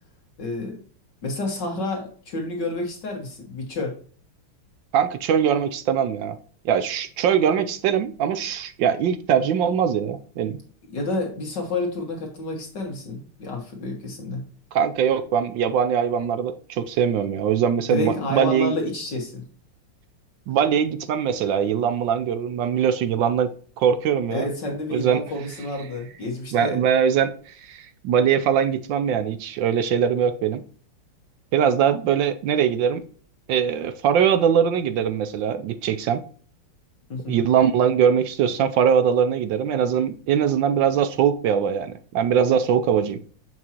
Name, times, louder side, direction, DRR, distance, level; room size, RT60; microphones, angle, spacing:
voice 1, 0.4-0.8 1.2-4.0 10.9-14.4 17.9-19.4 24.3-26.8 37.1-37.4, left 2 dB, 55° left, 1 dB, 1.9 m, -29 dB
voice 2, 4.9-6.3 6.6-10.6 14.7-18.7 20.5-23.5 23.8-24.5 24.9-25.2 26.5-30.6 31.5-33.0 33.5-36.2 37.3-43.2, right 8 dB, 75° right, 10 dB, 1.1 m, -22 dB
7.1 x 6.1 x 2.9 m, 0.44 s
omnidirectional pair, 2.4 m